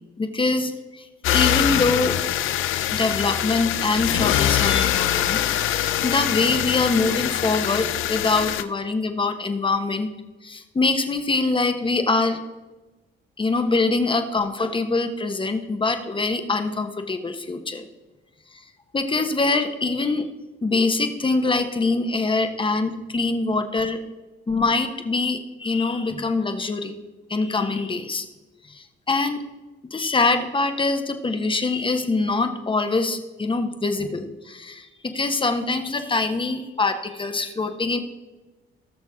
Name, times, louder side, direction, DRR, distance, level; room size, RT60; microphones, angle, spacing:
voice 1, 0.2-2.2 2.9-10.1 10.4-12.4 13.4-17.9 18.5-18.6 18.9-20.2 20.6-24.0 24.5-27.0 27.3-28.3 28.6-29.4 29.9-38.0, left 3 dB, 25° left, 7 dB, 1.2 m, -24 dB
sound 1, 1.2-8.6, left 12 dB, 80° left, 0.6 m, -23 dB
18.5 x 6.4 x 3.7 m, 1.2 s
cardioid pair, 90°, 20 cm